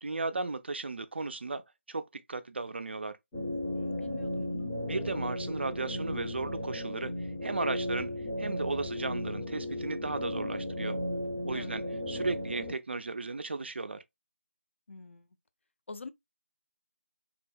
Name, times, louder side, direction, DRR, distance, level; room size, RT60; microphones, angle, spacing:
voice 1, 0.0-1.6 1.9-2.0 2.3-3.1 4.9-7.1 7.4-8.1 8.4-11.0 11.4-14.0, right 3 dB, 55° right, 0.3 m, -35 dB
sound 1, 3.3-12.7, left 1 dB, 10° left, 0.5 m, -35 dB
voice 2, 3.7-4.7 11.5-11.7 14.9-15.3 15.9-16.1, left 4 dB, 65° left, 0.4 m, -45 dB
2.7 x 2.0 x 2.3 m
figure-of-eight pair, 160°, 7 cm